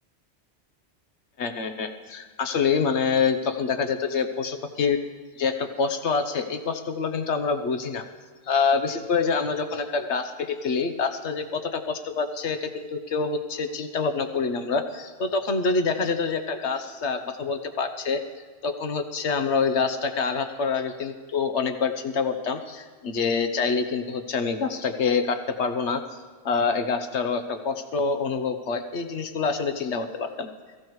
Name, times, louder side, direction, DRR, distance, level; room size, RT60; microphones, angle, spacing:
voice 1, 1.4-5.0 5.4-8.0 8.5-18.2 18.6-26.0 26.4-30.5, left 5 dB, 80° left, 8 dB, 1.3 m, -26 dB
22.0 x 15.5 x 3.2 m, 1.5 s
omnidirectional pair, 1.1 m